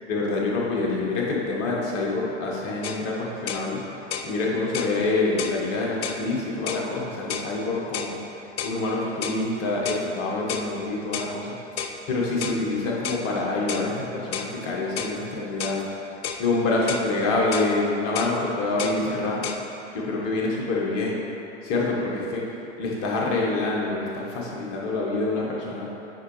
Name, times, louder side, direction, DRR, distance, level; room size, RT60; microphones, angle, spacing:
voice 1, 0.1-3.8 4.2-8.2 8.6-11.6 12.1-15.8 16.4-19.4 19.9-21.2 21.6-22.4 22.8-25.9, left 2 dB, 35° left, -3 dB, 1.3 m, -26 dB
sound 1, 2.8-3.0 3.5-3.7 4.1-4.3 4.7-5.0 5.4-5.6 6.0-6.2 6.7-6.9 7.3-7.5 7.9-8.2 8.6-8.8 9.2-9.4 9.9-10.1 10.5-10.7 11.1-11.3 11.8-12.0 12.4-12.6 13.0-13.3 13.7-13.9 14.3-14.5 15.0-15.2 15.6-15.8 16.2-16.5 16.9-17.1 17.5-17.7 18.2-18.4 18.8-19.0 19.4-19.6, left 7 dB, 55° left, 0.5 m, -31 dB
8.5 x 4.7 x 3.2 m, 2.8 s
figure-of-eight pair, 90°, 36 cm